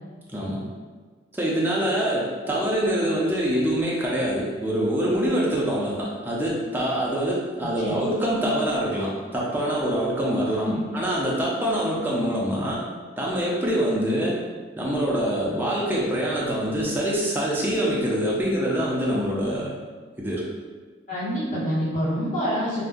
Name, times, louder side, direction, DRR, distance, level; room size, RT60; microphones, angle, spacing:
voice 1, 0.3-0.7 1.3-12.8 13.2-14.4 14.8-19.7 20.2-20.4, equal, 10° right, -5 dB, 0.4 m, -25 dB
voice 2, 21.1-22.8, equal, 45° left, -11 dB, 1.4 m, -27 dB
2.6 x 2.1 x 3.6 m, 1.4 s
head